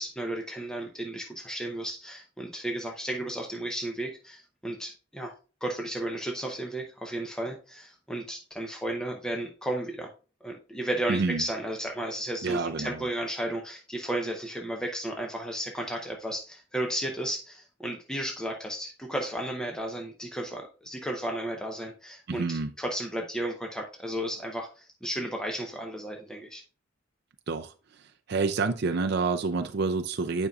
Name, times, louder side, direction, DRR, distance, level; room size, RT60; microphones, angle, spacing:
voice 1, 0.0-5.3 5.6-10.1 10.4-26.6, right 1 dB, 5° left, 1 dB, 0.7 m, -34 dB
voice 2, 11.1-11.4 12.4-13.0 22.3-22.7 27.5-28.0 28.3-30.5, right 4 dB, 55° right, 6 dB, 0.5 m, -28 dB
9.6 x 5.3 x 2.4 m, 0.35 s
head